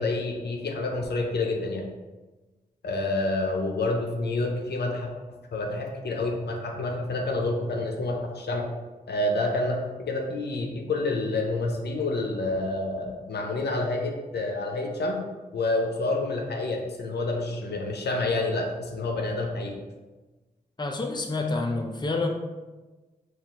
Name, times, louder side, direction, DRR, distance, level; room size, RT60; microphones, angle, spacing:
voice 1, 0.0-1.9 2.8-5.1 5.5-8.7 9.1-15.3 15.5-19.8, left 2 dB, 80° left, 1 dB, 0.5 m, -28 dB
voice 2, 20.8-22.3, left 3 dB, 25° left, 2 dB, 0.5 m, -28 dB
4.1 x 2.4 x 3.5 m, 1.2 s
cardioid pair, 55°, 17 cm